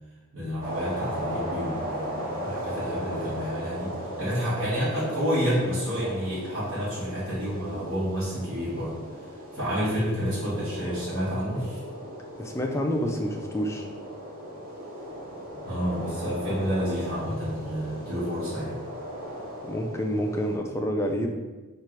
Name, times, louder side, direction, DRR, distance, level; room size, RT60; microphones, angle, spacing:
voice 1, 0.3-8.9 9.5-11.8 15.6-18.8, equal, 60° right, -11 dB, 1.4 m, -29 dB
sound 1, 0.6-20.6, equal, 40° right, 0.9 m, -37 dB
voice 2, 12.4-13.9 19.6-21.3, equal, 10° left, 3 dB, 0.3 m, -28 dB
4.4 x 2.4 x 4.5 m, 1.2 s
head